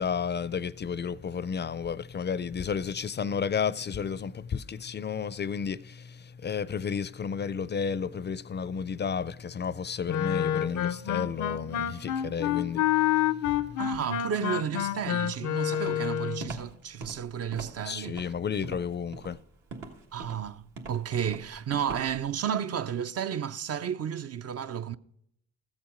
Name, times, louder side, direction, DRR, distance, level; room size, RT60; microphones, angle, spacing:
voice 1, 0.0-13.8 17.8-19.4, left 6 dB, 35° left, 0.4 m, -32 dB
Wind instrument woodwind instrument, 10.1-16.5, left 12 dB, 80° left, 0.6 m, -28 dB
voice 2, 13.8-18.2 20.1-25.0, right 8 dB, 55° right, 0.5 m, -32 dB
Walk footsteps, 15.9-22.3, right 3 dB, 75° right, 1.6 m, -42 dB
13.5 x 7.3 x 5.0 m
supercardioid pair, 55°, 30 cm